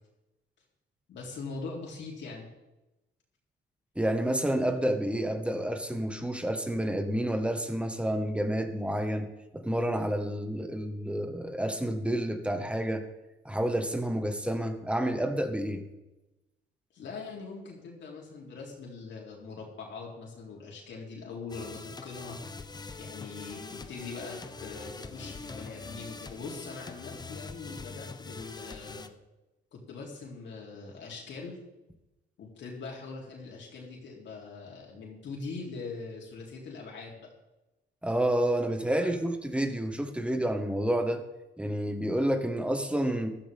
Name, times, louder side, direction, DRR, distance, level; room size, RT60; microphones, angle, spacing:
voice 1, 1.1-2.5 16.9-22.4 23.0-29.1 29.7-31.6 32.4-37.3 39.0-39.2, left 4 dB, 70° left, -2 dB, 3.5 m, -42 dB
voice 2, 3.9-9.3 9.5-13.0 13.4-15.8 38.0-41.2 41.6-43.3, right 1 dB, 5° right, 6 dB, 1.7 m, -29 dB
sound 1, 21.5-29.1, left 4 dB, 20° left, 0.8 m, -43 dB
14.5 x 13.5 x 3.7 m, 0.99 s
cardioid pair, 105°, 20 cm